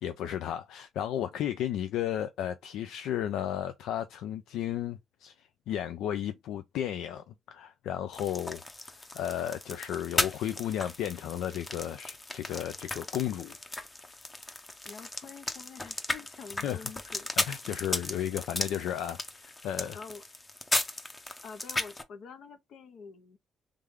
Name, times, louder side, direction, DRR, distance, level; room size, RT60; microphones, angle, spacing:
voice 1, 0.0-8.6 8.9-13.6 16.6-20.0, left 10 dB, 85° left, 0.4 m, -34 dB
sound 1, 8.1-22.0, left 2 dB, 20° left, 0.8 m, -36 dB
voice 2, 14.9-17.3 19.9-20.2 21.4-23.4, left 5 dB, 70° left, 0.9 m, -47 dB
3.4 x 3.3 x 3.6 m
cardioid pair, 90°, 0 cm